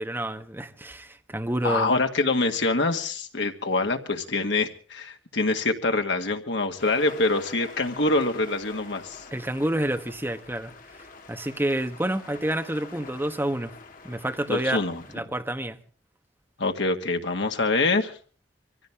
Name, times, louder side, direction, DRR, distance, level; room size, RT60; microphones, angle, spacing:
voice 1, 0.0-1.9 9.3-10.7 11.3-13.7 14.0-14.8 15.1-15.8, right 1 dB, 15° right, 1.2 m, -28 dB
voice 2, 1.6-9.2 14.5-15.0 16.6-18.2, left 3 dB, 75° left, 2.0 m, -25 dB
sound 1, 6.8-15.2, left 3 dB, 50° left, 2.2 m, -46 dB
24.0 x 16.0 x 3.6 m
head